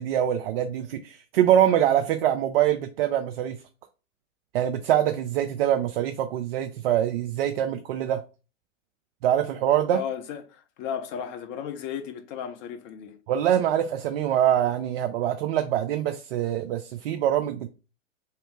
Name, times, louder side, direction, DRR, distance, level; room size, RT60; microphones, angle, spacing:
voice 1, 0.0-3.6 4.5-8.2 9.2-10.0 13.3-17.7, right 11 dB, 45° right, 0.5 m, -24 dB
voice 2, 9.9-13.2, left 8 dB, 30° left, 0.7 m, -34 dB
3.2 x 2.8 x 4.5 m
figure-of-eight pair, 105°, 40 cm